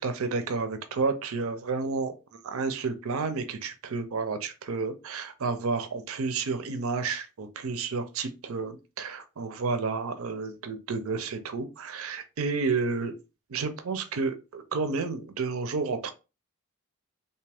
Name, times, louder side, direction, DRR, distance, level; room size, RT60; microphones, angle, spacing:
voice 1, 0.0-13.2 13.5-16.1, right 4 dB, 70° right, 0.5 m, -31 dB
3.3 x 2.7 x 3.4 m
head